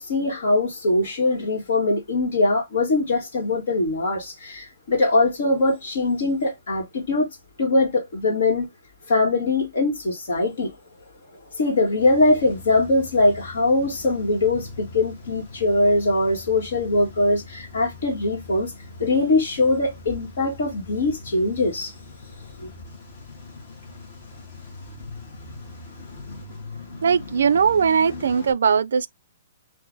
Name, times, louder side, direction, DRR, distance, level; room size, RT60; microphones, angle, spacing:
voice 1, 0.0-7.3 7.6-8.7 9.1-10.7 11.5-18.7 19.0-21.9 22.6-22.7, left 2 dB, 60° left, 1.7 m, -22 dB
Car / Engine starting / Idling, 12.0-28.5, left 3 dB, 35° left, 1.4 m, -41 dB
voice 2, 27.0-29.1, right 6 dB, 75° right, 0.3 m, -19 dB
6.7 x 2.6 x 2.6 m
hypercardioid pair, 175°, 0 cm